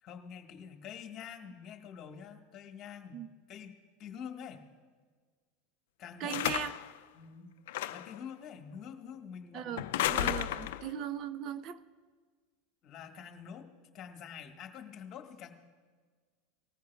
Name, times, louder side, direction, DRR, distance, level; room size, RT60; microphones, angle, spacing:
voice 1, 0.0-3.2 3.5-4.6 6.0-6.4 7.1-7.5 7.9-10.6 12.8-13.7 13.9-15.5, left 7 dB, 45° left, 5 dB, 1.4 m, -47 dB
voice 2, 6.2-6.8 9.5-11.8, right 9 dB, 50° right, 12 dB, 0.6 m, -38 dB
Heavy Door Open Close, 6.3-6.9 7.7-8.2 9.8-10.9, left 13 dB, 75° left, 0.4 m, -33 dB
19.5 x 14.0 x 2.3 m, 1.5 s
hypercardioid pair, 105°, 0 cm